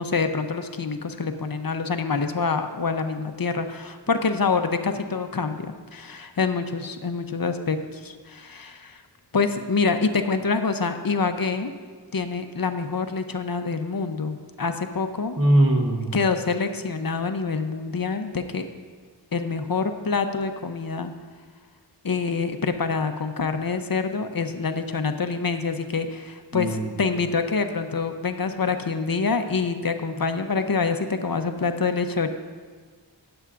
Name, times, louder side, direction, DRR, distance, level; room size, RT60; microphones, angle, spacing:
voice 1, 0.0-9.0 9.3-11.7 12.1-15.4 16.1-18.7 19.3-21.1 22.0-32.3, left 4 dB, 55° left, 8 dB, 0.7 m, -26 dB
voice 2, 15.4-16.2 26.5-26.9, right 1 dB, 30° right, -2 dB, 1.0 m, -20 dB
16.0 x 7.8 x 2.5 m, 1.5 s
wide cardioid pair, 50°, 44 cm